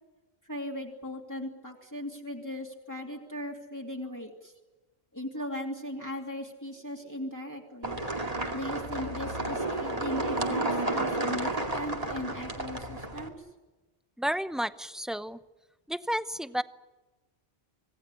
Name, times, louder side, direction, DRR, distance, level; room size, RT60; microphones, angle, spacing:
voice 1, 0.4-4.5 5.1-8.0 8.5-13.5, left 1 dB, 15° left, -1 dB, 2.8 m, -38 dB
sound 1, 7.8-13.3, right 2 dB, 35° right, 2.5 m, -31 dB
voice 2, 14.2-15.4 15.9-16.6, equal, ahead, 13 dB, 0.6 m, -31 dB
26.5 x 17.5 x 9.8 m, 1.2 s
omnidirectional pair, 1.1 m